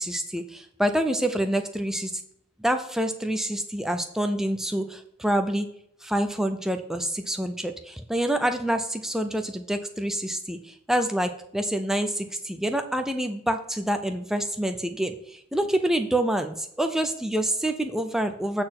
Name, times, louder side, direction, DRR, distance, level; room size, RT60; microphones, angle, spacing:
voice 1, 0.0-2.2 2.6-5.7 6.0-18.6, right 1 dB, ahead, 6 dB, 0.5 m, -27 dB
8.4 x 4.4 x 5.9 m, 0.71 s
head